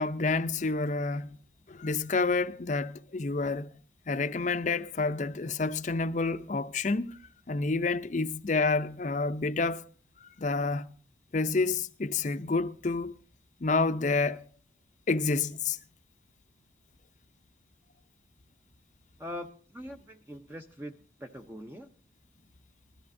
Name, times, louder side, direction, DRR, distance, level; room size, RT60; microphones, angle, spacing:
voice 1, 0.0-1.4 1.7-3.7 4.1-7.2 7.5-9.9 10.4-10.9 11.3-13.1 13.6-14.5 15.1-15.8, left 3 dB, 40° left, 0.5 m, -29 dB
voice 2, 19.2-21.9, equal, 10° right, 0.5 m, -42 dB
20.5 x 13.0 x 2.6 m
head